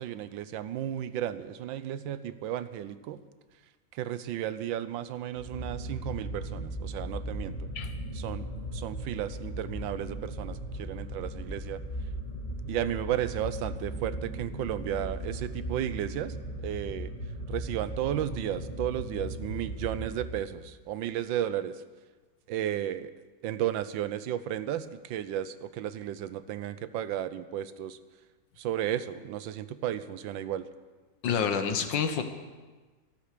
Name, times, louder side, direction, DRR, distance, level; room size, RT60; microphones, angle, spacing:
voice 1, 0.0-3.2 3.9-7.6 8.1-8.5 8.7-11.8 12.7-16.3 16.6-17.1 17.5-21.8 22.5-23.1 23.4-28.0 28.6-30.7, right 11 dB, 85° right, 14 dB, 1.4 m, -33 dB
sound 1, 5.4-20.7, right 1 dB, 25° left, 2.8 m, -37 dB
voice 2, 31.2-32.2, left 7 dB, 75° left, 7 dB, 1.8 m, -28 dB
13.0 x 12.5 x 6.7 m, 1.3 s
omnidirectional pair, 2.0 m